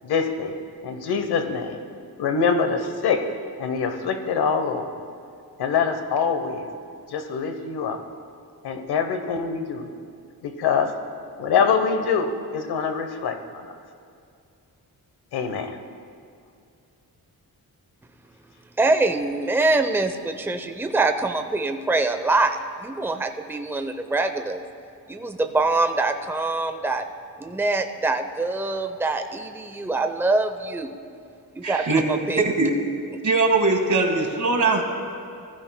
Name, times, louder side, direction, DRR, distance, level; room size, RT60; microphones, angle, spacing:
voice 1, 0.0-0.5 0.8-1.8 2.2-3.2 3.6-5.0 5.6-6.7 7.1-8.0 8.6-9.9 10.4-10.9 11.4-13.8 15.3-15.8, left 6 dB, 90° left, 7 dB, 1.0 m, -24 dB
voice 2, 18.8-24.6 25.1-27.1 27.4-30.9 31.5-32.4, right 3 dB, 5° right, 7 dB, 0.6 m, -24 dB
voice 3, 31.6-32.0 32.4-32.7 33.2-34.8, right 3 dB, 50° right, 3 dB, 1.8 m, -21 dB
19.0 x 15.0 x 2.2 m, 2.4 s
cardioid pair, 80°, 38 cm